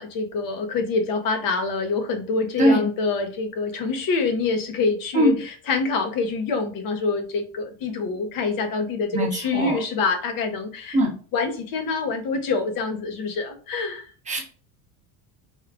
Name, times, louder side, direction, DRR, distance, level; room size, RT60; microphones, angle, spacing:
voice 1, 0.0-11.0 11.3-14.1, left 4 dB, 45° left, 8 dB, 0.8 m, -26 dB
voice 2, 9.1-9.8 10.9-11.1 14.3-14.4, equal, 15° right, 0 dB, 0.9 m, -21 dB
3.6 x 2.3 x 3.5 m, 0.38 s
cardioid pair, 150°, 46 cm